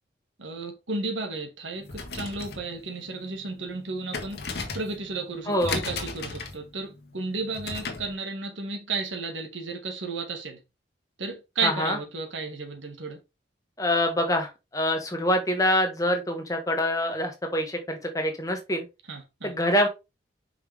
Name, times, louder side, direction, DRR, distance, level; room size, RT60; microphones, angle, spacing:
voice 1, 0.4-4.4 4.7-10.6 11.2-13.2 19.1-19.5, right 3 dB, 85° right, 1.8 m, -33 dB
sound 1, 1.8-8.1, left 4 dB, 55° left, 1.4 m, -36 dB
voice 2, 5.5-5.8 11.6-12.0 13.8-18.8 19.4-19.9, left 1 dB, 20° left, 1.3 m, -25 dB
5.7 x 5.1 x 3.4 m
head